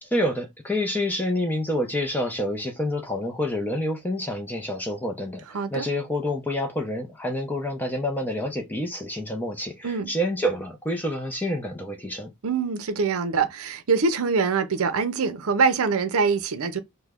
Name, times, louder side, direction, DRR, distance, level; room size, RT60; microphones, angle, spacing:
voice 1, 0.0-12.3, left 1 dB, 10° left, 0.5 m, -28 dB
voice 2, 5.5-5.9 9.8-10.1 12.4-16.8, right 5 dB, 75° right, 0.6 m, -24 dB
3.1 x 2.1 x 3.5 m
head